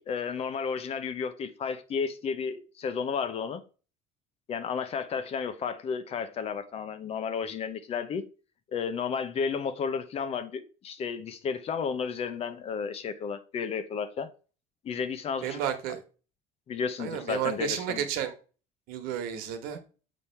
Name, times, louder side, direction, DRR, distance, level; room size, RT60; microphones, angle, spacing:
voice 1, 0.0-3.6 4.5-8.2 8.7-14.3 14.8-15.6 16.7-18.0, left 6 dB, 40° left, 0.8 m, -32 dB
voice 2, 15.4-16.0 17.0-18.3 18.9-19.8, right 10 dB, 75° right, 1.2 m, -32 dB
7.2 x 3.1 x 5.7 m
cardioid pair, 120°, 15 cm